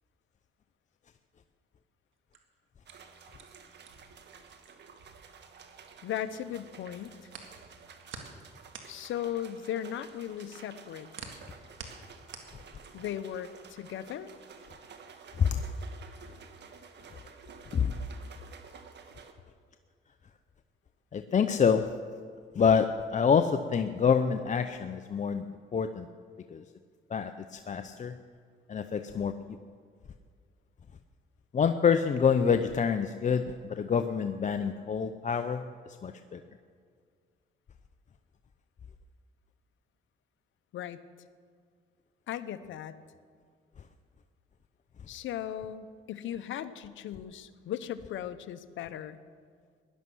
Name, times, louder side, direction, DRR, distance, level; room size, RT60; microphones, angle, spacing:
sound 1, 2.1-6.3 6.6-13.2, right 6 dB, 80° right, 1.9 m, -49 dB
sound 2, 2.9-19.3, right 6 dB, 60° right, 1.4 m, -52 dB
voice 1, 6.0-7.3 8.9-11.1 12.9-14.3 40.7-41.0 42.3-42.9 45.1-49.2, left 10 dB, 75° left, 11 dB, 0.8 m, -37 dB
voice 2, 21.1-22.0 22.5-26.1 26.5-26.6 27.1-28.2 28.7-29.3 31.5-35.6 36.0-36.4, left 6 dB, 40° left, 8 dB, 0.6 m, -27 dB
16.5 x 11.0 x 6.2 m, 2.1 s
cardioid pair, 90°, 20 cm